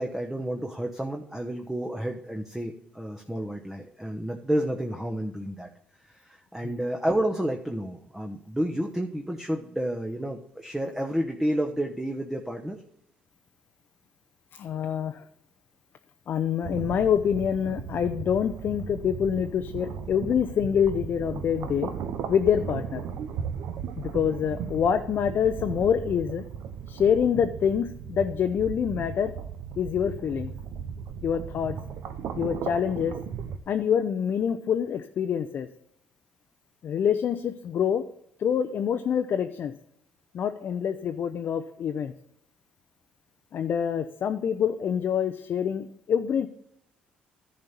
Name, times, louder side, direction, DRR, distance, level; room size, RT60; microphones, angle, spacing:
voice 1, 0.0-5.7 6.1-12.8, right 1 dB, 10° right, 2 dB, 1.0 m, -30 dB
voice 2, 14.5-15.3 16.3-21.9 22.3-23.0 24.0-26.4 26.9-29.3 29.8-30.5 31.2-31.8 32.4-33.1 33.7-35.7 36.8-38.0 38.4-39.7 40.3-42.1 43.5-46.5, left 8 dB, 55° left, 7 dB, 0.6 m, -26 dB
sound 1, 16.6-33.6, right 7 dB, 70° right, 0.8 m, -36 dB
10.5 x 4.4 x 6.8 m, 0.75 s
supercardioid pair, 65°, 4 cm